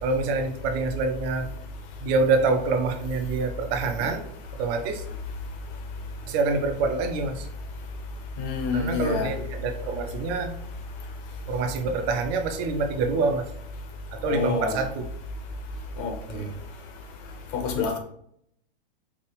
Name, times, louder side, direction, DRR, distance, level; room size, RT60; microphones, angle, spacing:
voice 1, 0.0-1.5 2.0-4.2 4.5-5.0 6.3-7.5 8.7-10.5 11.5-13.5 14.1-15.0 16.3-16.5, right 4 dB, 35° right, 6 dB, 0.6 m, -26 dB
voice 2, 8.4-9.3 14.3-14.8 16.0-16.1 17.5-18.0, left 4 dB, 40° left, 4 dB, 1.0 m, -27 dB
4.7 x 2.4 x 3.0 m, 0.70 s
hypercardioid pair, 115°, 29 cm